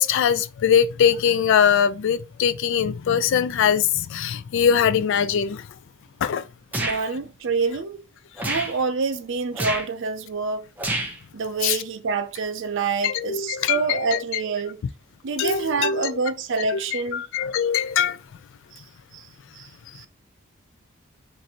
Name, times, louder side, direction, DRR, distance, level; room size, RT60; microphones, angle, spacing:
voice 1, 0.0-5.6 6.2-6.4 11.6-11.8 13.0-14.2 15.4-16.2 16.7-18.2, left 8 dB, 60° left, 0.3 m, -22 dB
sound 1, 6.7-7.0 8.4-8.7 9.5-9.9 10.8-11.2, right 1 dB, 10° right, 0.5 m, -27 dB
voice 2, 6.8-8.0 8.4-10.7 11.3-14.8 15.2-17.2 19.1-19.2 19.6-19.7 19.9-20.0, right 4 dB, 60° right, 0.5 m, -27 dB
2.6 x 2.5 x 4.2 m
head